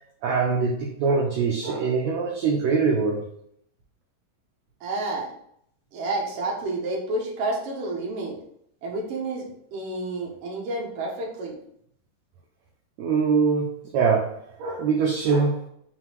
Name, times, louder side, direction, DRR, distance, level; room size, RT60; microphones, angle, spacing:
voice 1, 0.2-3.3 13.0-15.7, right 5 dB, 70° right, -1 dB, 1.9 m, -23 dB
voice 2, 4.8-5.3 5.9-8.4 8.8-11.6, right 2 dB, 55° right, -3 dB, 2.0 m, -30 dB
5.1 x 4.0 x 4.6 m, 0.69 s
omnidirectional pair, 3.9 m